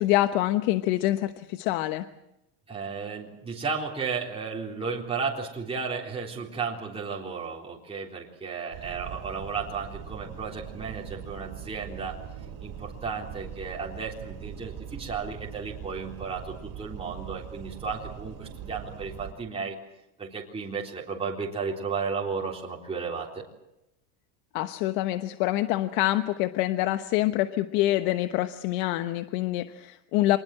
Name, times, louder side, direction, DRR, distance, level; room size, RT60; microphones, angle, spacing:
voice 1, 0.0-2.0 24.5-30.4, left 15 dB, 70° left, 10 dB, 1.2 m, -26 dB
voice 2, 2.7-12.2 12.6-19.8 20.2-23.4, right 5 dB, 15° right, -2 dB, 3.8 m, -34 dB
sound 1, 8.7-19.3, right 9 dB, 55° right, 4.2 m, -41 dB
25.5 x 20.0 x 7.8 m, 0.89 s
supercardioid pair, 140°, 45 cm